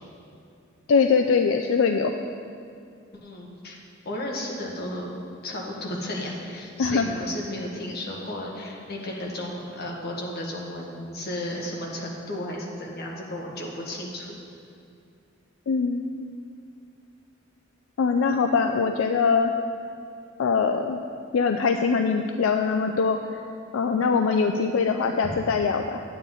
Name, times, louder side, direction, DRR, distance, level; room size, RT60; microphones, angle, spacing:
voice 1, 0.9-2.2 6.8-7.1 15.7-16.3 18.0-19.5 20.4-21.0 21.3-23.2 23.7-26.0, left 5 dB, 80° left, 5 dB, 0.4 m, -22 dB
voice 2, 3.1-3.8 4.0-5.1 5.4-14.3, left 1 dB, 55° left, -2 dB, 1.5 m, -34 dB
9.7 x 8.9 x 3.8 m, 2.4 s
head